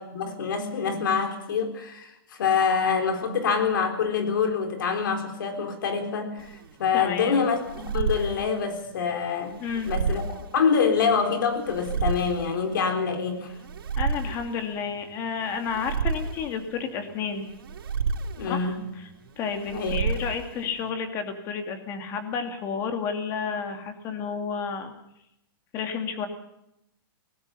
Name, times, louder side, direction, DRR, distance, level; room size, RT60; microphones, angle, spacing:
voice 1, 0.0-9.6 9.9-13.5 18.4-18.8 19.7-20.0, left 6 dB, 60° left, 6 dB, 3.9 m, -26 dB
sound 1, 6.4-20.9, right 5 dB, 75° right, 3.7 m, -32 dB
voice 2, 6.9-7.5 9.6-9.9 14.0-17.5 18.4-19.1 19.4-24.9 25.7-26.3, left 6 dB, 20° left, 6 dB, 2.6 m, -31 dB
25.0 x 19.0 x 5.6 m, 0.81 s
hypercardioid pair, 170°, 12 cm